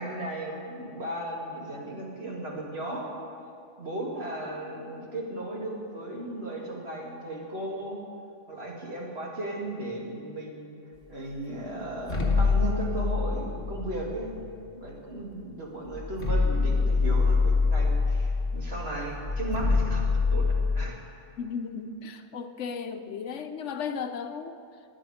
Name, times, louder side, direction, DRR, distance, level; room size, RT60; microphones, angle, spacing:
voice 1, 0.0-3.1 3.8-8.0 8.5-10.7 11.1-14.3 14.7-21.0, right 1 dB, 60° right, -3 dB, 2.6 m, -35 dB
sound 1, 12.0-14.7 15.5-15.6 15.9-20.8, left 4 dB, 50° left, 1.6 m, -25 dB
voice 2, 21.4-24.6, left 6 dB, 80° left, 8 dB, 1.1 m, -35 dB
20.0 x 9.6 x 4.9 m, 2.5 s
omnidirectional pair, 1.2 m